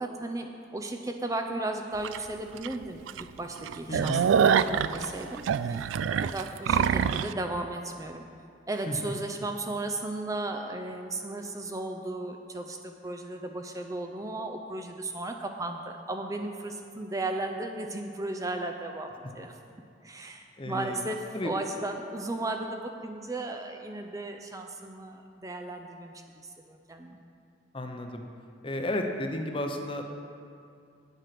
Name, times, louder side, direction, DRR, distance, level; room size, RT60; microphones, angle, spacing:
voice 1, 0.0-3.0 3.4-5.9 6.2-8.2 8.7-19.1 19.3-19.5 20.0-26.1 26.7-27.2, right 2 dB, 20° right, 4 dB, 0.5 m, -35 dB
sound 1, 2.0-2.2 2.6-2.7 3.1-3.2 3.6-7.3, right 7 dB, 90° right, 0.3 m, -25 dB
voice 2, 3.9-4.3 8.9-9.0 20.6-21.0 21.3-21.5 27.7-28.2 28.6-30.0, left 1 dB, 30° left, 4 dB, 0.8 m, -33 dB
9.1 x 8.0 x 5.9 m, 2.5 s
head